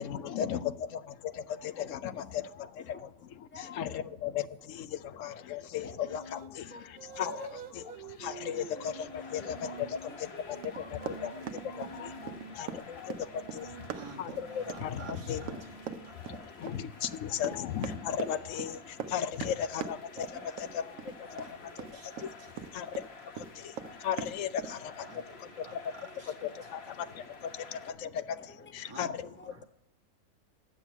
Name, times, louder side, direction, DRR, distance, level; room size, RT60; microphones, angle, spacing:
voice 1, 0.0-3.1 3.5-6.7 7.2-9.9 10.2-12.1 12.6-13.9 14.2-15.5 16.6-20.8 21.2-22.3 22.7-25.8 26.4-28.4 28.7-29.3, left 9 dB, 75° left, 13 dB, 1.0 m, -36 dB
voice 2, 2.5-3.1 3.5-4.0 5.3-5.4 5.8-6.0 6.7-7.6 8.4-8.8 9.4-9.8 10.3-11.4 11.7-11.9 12.2-12.4 15.3-15.6 16.3-16.7 18.4-18.5 19.4-19.5 20.3-20.5 20.8-21.4 28.0-28.1 28.4-28.7 29.0-29.6, left 3 dB, 10° left, 6 dB, 0.7 m, -51 dB
sound 1, 6.1-6.6 6.9-12.6 13.3-16.2, right 4 dB, 50° right, 0.6 m, -48 dB
sound 2, 8.4-27.9, left 4 dB, 55° left, 1.3 m, -51 dB
Run, 10.6-23.1 23.3-24.7, right 7 dB, 85° right, 1.1 m, -41 dB
voice 3, 13.9-15.8 16.0-16.2 21.4-22.9 23.6-23.7 24.6-27.1 28.8-29.6, right 3 dB, 20° right, -1 dB, 1.4 m, -52 dB
8.9 x 7.3 x 8.1 m, 0.85 s
omnidirectional pair, 1.4 m